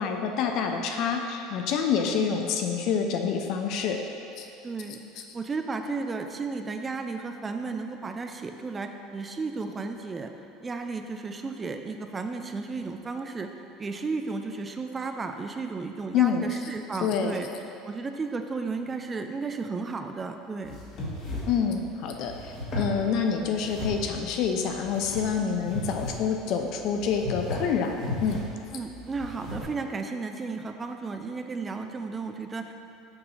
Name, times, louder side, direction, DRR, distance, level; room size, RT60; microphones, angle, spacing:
voice 1, 0.0-4.0 4.4-4.5 16.1-16.5 17.0-17.4 21.5-27.9 28.2-28.4, left 7 dB, 55° left, 4 dB, 0.4 m, -27 dB
voice 2, 2.2-2.5 4.6-10.3 10.6-13.5 13.8-17.5 17.8-20.8 25.4-25.6 28.7-32.7, right 4 dB, 20° right, 6 dB, 0.3 m, -34 dB
sound 1, 20.6-29.6, left 1 dB, 35° left, 1.3 m, -36 dB
6.7 x 2.8 x 5.5 m, 2.7 s
cardioid pair, 145°, 0 cm